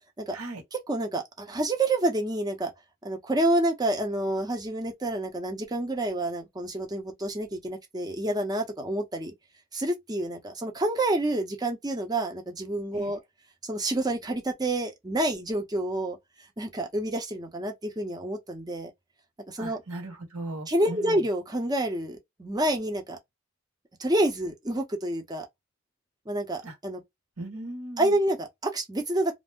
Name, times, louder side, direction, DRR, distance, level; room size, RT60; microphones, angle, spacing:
voice 1, 0.9-2.7 3.0-9.3 9.7-13.2 13.6-16.2 16.6-18.9 19.5-19.8 20.7-23.2 24.0-25.5 26.3-27.0 28.0-29.4, right 1 dB, 20° right, 0.6 m, -28 dB
voice 2, 19.6-21.2 26.6-26.7 27.4-28.2, right 2 dB, 75° right, 1.4 m, -38 dB
2.5 x 2.1 x 3.5 m
head